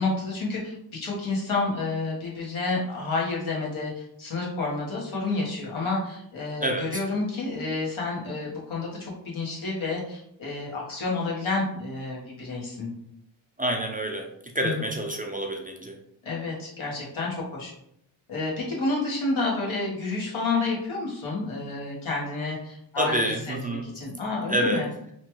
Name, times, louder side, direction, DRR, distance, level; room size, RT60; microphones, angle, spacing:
voice 1, 0.0-12.9 14.6-14.8 16.2-17.7 18.3-24.9, left 3 dB, 90° left, -4 dB, 1.1 m, -30 dB
voice 2, 6.6-7.0 13.6-16.0 23.0-23.9 24.5-24.9, right 1 dB, 20° right, 2 dB, 0.3 m, -28 dB
3.0 x 2.2 x 2.9 m, 0.73 s
wide cardioid pair, 80°, 47 cm